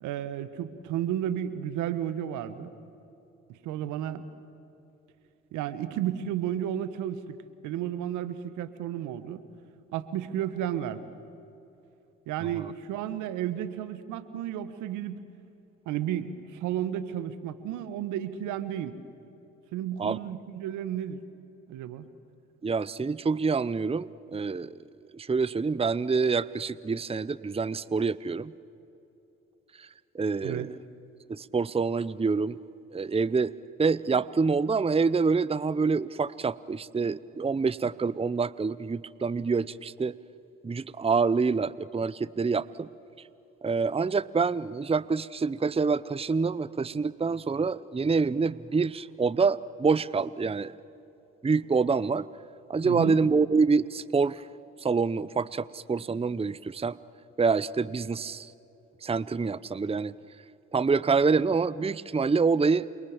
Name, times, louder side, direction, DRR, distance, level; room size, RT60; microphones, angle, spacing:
voice 1, 0.0-2.7 3.5-4.2 5.5-7.3 7.6-9.4 9.9-11.1 12.3-15.2 15.8-19.0 19.7-21.2 21.7-22.0 30.4-30.7 52.8-53.2, right 10 dB, 80° right, 13 dB, 1.4 m, -32 dB
voice 2, 22.6-24.7 25.1-28.5 29.8-29.9 30.1-30.7 31.3-32.6 32.9-33.5 33.8-40.1 40.6-42.9 43.6-50.7 51.4-52.3 52.7-54.4 54.8-57.0 57.4-58.5 59.0-60.1 60.7-62.9, right 4 dB, 20° right, 19 dB, 0.7 m, -26 dB
28.5 x 23.0 x 7.3 m, 2.9 s
hypercardioid pair, 45°, 30 cm